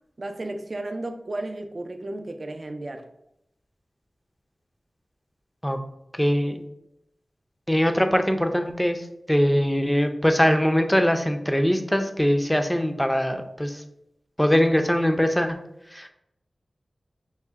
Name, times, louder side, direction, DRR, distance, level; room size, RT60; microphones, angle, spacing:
voice 1, 0.2-3.1, right 2 dB, 50° right, 7 dB, 0.4 m, -33 dB
voice 2, 6.1-6.6 7.7-9.0 9.3-13.8 14.4-15.6 15.9-16.1, equal, 5° left, 6 dB, 0.4 m, -22 dB
5.5 x 2.1 x 3.5 m, 0.81 s
wide cardioid pair, 55°, 0 cm